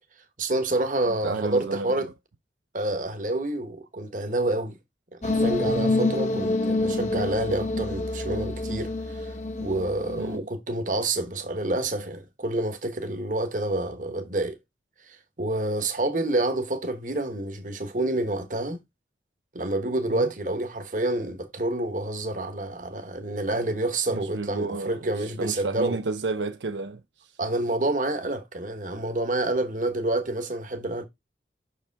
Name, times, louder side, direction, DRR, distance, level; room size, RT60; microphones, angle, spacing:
voice 1, 0.4-2.1 2.7-4.8 5.2-9.3 9.6-14.6 15.1-18.8 19.5-26.0 27.4-31.0, right 2 dB, 45° right, 1.3 m, -28 dB
voice 2, 1.2-1.9 10.2-10.5 20.1-20.3 24.1-27.0, right 3 dB, 90° right, 0.6 m, -31 dB
sound 1, 5.2-10.4, left 2 dB, 40° left, 0.9 m, -27 dB
6.4 x 5.0 x 3.5 m
head